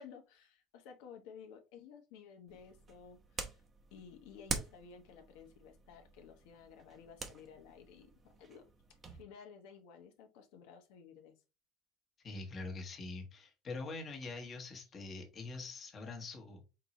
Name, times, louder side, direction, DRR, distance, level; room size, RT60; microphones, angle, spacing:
voice 1, 0.0-3.6 3.9-8.6 9.1-11.3, left 6 dB, 80° left, 4 dB, 1.0 m, -54 dB
sound 1, 2.5-9.2, right 4 dB, 20° right, 0.7 m, -46 dB
voice 2, 12.2-16.6, left 3 dB, 25° left, 2 dB, 1.2 m, -44 dB
4.4 x 3.9 x 3.0 m, 0.28 s
cardioid pair, 155°, 0 cm